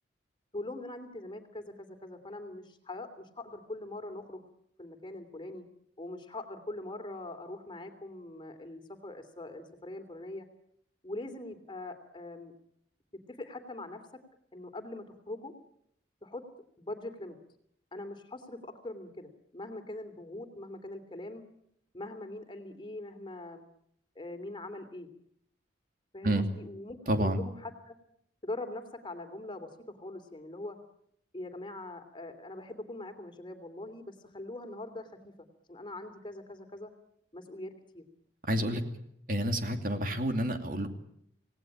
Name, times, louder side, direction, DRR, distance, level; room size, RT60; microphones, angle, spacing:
voice 1, 0.5-4.4 4.8-5.6 6.0-10.5 11.0-12.5 13.1-14.2 14.5-15.5 16.2-16.5 16.8-17.4 17.9-21.4 21.9-23.6 24.1-25.1 26.1-28.0 28.4-30.8 31.3-35.3 35.7-36.9 37.3-38.0, left 2 dB, 25° left, 7 dB, 3.0 m, -42 dB
voice 2, 27.1-27.4 38.5-38.8 39.3-40.9, right 1 dB, 50° right, 5 dB, 2.6 m, -29 dB
27.5 x 18.5 x 8.9 m, 0.73 s
head